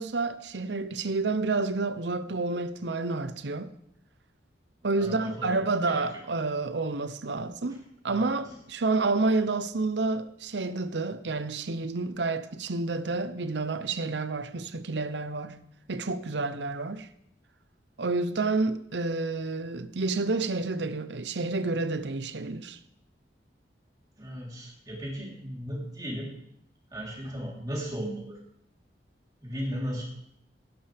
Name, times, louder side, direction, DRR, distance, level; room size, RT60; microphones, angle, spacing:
voice 1, 0.0-3.7 4.8-15.6 15.9-17.1 18.0-22.8, right 3 dB, 80° right, 0.8 m, -29 dB
voice 2, 5.0-6.2 7.7-7.8 8.1-8.6 24.2-26.3 26.9-28.4 29.4-30.0, equal, 20° right, 3.7 m, -36 dB
17.0 x 11.5 x 3.5 m
head